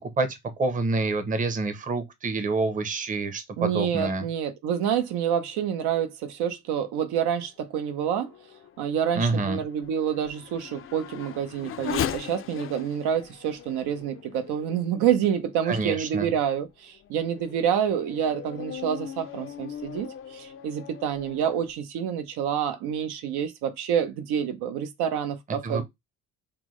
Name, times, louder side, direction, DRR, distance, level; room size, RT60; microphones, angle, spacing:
voice 1, 0.2-4.2 9.1-9.6 15.7-16.3 25.6-25.8, right 3 dB, 20° right, 0.6 m, -27 dB
voice 2, 3.6-8.3 8.8-25.8, right 9 dB, 85° right, 0.8 m, -28 dB
Race car auto racing / Accelerating revving vroom, 7.7-15.6 16.2-16.3 16.9-21.7, left 9 dB, 35° left, 0.4 m, -39 dB
5.8 x 2.1 x 3.1 m
cardioid pair, 120°, 38 cm